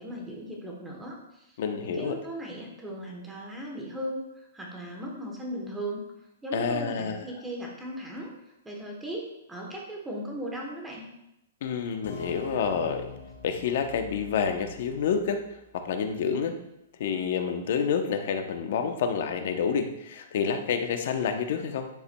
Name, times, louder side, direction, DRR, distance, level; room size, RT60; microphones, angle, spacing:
voice 1, 0.0-6.0 6.4-8.3 8.6-11.0, right 1 dB, 5° right, -1 dB, 1.0 m, -37 dB
voice 2, 1.6-2.2 6.5-7.3 11.6-13.0 13.4-15.4 15.7-16.6 17.0-21.9, left 6 dB, 50° left, 7 dB, 0.8 m, -28 dB
sound 1, 12.0-15.6, left 4 dB, 80° left, 2.1 m, -46 dB
10.0 x 6.8 x 2.3 m, 0.84 s
hypercardioid pair, 170°, 0 cm